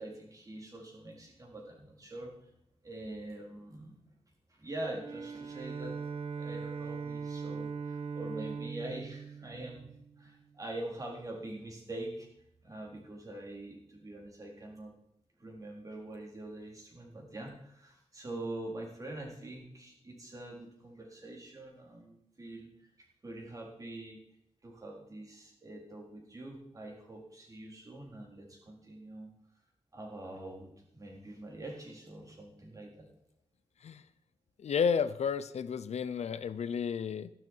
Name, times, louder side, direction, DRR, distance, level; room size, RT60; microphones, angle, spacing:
voice 1, 0.0-2.3 2.8-4.0 4.5-6.0 6.4-9.9 10.2-12.3 12.6-14.9 15.4-22.7 23.0-24.2 24.6-29.3 29.9-33.1, right 1 dB, 30° right, 0 dB, 3.7 m, -44 dB
Bowed string instrument, 4.8-10.4, right 5 dB, 60° right, 1.4 m, -40 dB
voice 2, 34.6-37.3, left 6 dB, 80° left, 14 dB, 0.6 m, -32 dB
14.0 x 11.5 x 4.6 m, 0.75 s
wide cardioid pair, 180°, 11 cm